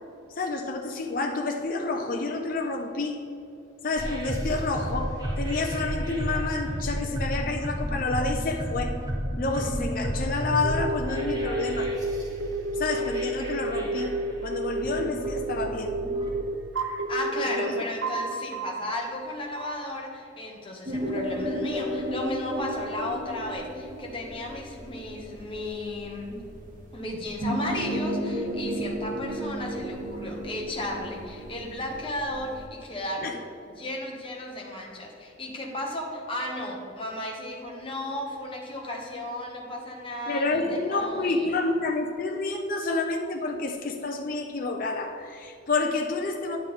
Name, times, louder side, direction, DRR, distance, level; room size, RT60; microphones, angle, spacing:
voice 1, 0.3-3.2 3.8-8.9 9.4-11.9 12.7-14.1 14.4-15.9 17.3-17.8 33.2-33.3 40.3-46.6, left 3 dB, 45° left, 3 dB, 0.6 m, -29 dB
sound 1, 4.0-16.3, equal, 20° right, 1.2 m, -32 dB
sound 2, 10.6-19.0 19.5-20.0, right 2 dB, 70° right, 0.7 m, -31 dB
voice 2, 17.1-26.4 26.9-33.4 33.7-41.5, left 1 dB, 30° left, -1 dB, 1.2 m, -34 dB
sound 3, 20.9-32.7, equal, 45° right, 1.0 m, -33 dB
9.6 x 6.5 x 3.7 m, 2.6 s
head